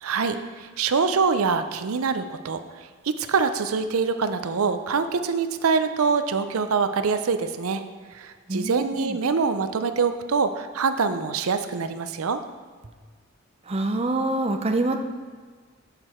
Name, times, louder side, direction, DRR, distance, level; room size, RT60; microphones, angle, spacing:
voice 1, 0.0-7.8 8.1-12.4, right 5 dB, 80° right, 10 dB, 0.5 m, -25 dB
voice 2, 8.5-9.2 13.7-15.0, right 2 dB, 25° right, 5 dB, 0.6 m, -25 dB
8.1 x 6.7 x 4.4 m, 1.6 s
head